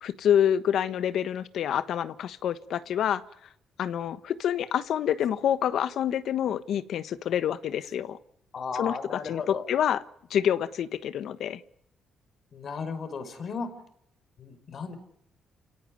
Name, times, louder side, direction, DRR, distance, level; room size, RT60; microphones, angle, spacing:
voice 1, 0.0-3.2 3.8-8.2 8.8-10.0 10.3-11.6, left 9 dB, 70° left, 13 dB, 1.3 m, -27 dB
voice 2, 8.5-9.6 12.5-13.7 14.4-14.9, left 5 dB, 55° left, 10 dB, 5.4 m, -35 dB
29.0 x 18.0 x 9.8 m, 0.75 s
cardioid pair, 90°, 0 cm